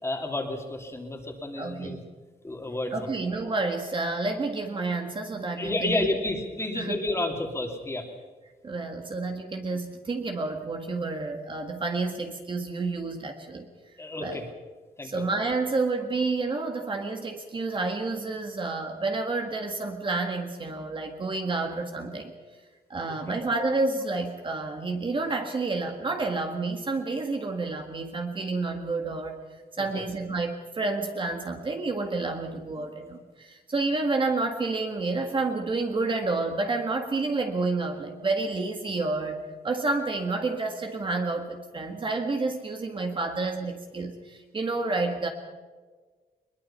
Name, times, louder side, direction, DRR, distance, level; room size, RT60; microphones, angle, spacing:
voice 1, 0.0-2.0 2.4-3.1 5.6-8.0 14.0-14.5 15.0-15.2 23.3-23.4 29.9-30.0 32.8-32.9, left 2 dB, 15° left, 2 dB, 2.8 m, -31 dB
voice 2, 1.6-2.0 2.9-6.1 6.8-7.0 8.6-13.7 14.2-14.4 15.0-22.3 22.9-29.4 29.8-45.3, right 3 dB, 30° right, 4 dB, 1.8 m, -29 dB
21.5 x 21.5 x 5.7 m, 1.4 s
wide cardioid pair, 155°, 16 cm